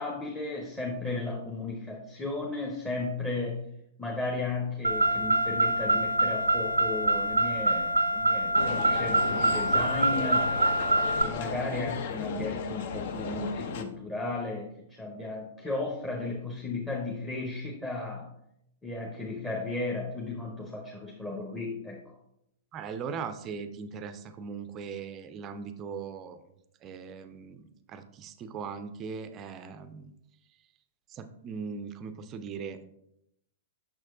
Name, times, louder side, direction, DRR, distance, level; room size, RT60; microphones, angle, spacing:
voice 1, 0.0-3.6 4.0-10.5 11.2-18.3 18.8-22.0, left 3 dB, 10° left, -1 dB, 0.8 m, -34 dB
Car, 4.8-11.2, right 1 dB, 85° right, 0.5 m, -25 dB
sound 1, 8.5-13.8, left 5 dB, 50° left, 0.5 m, -35 dB
voice 2, 22.7-26.4 26.8-30.1 31.1-32.8, right 6 dB, 30° right, 10 dB, 0.4 m, -39 dB
6.2 x 6.1 x 2.5 m, 0.79 s
figure-of-eight pair, 105°, 0 cm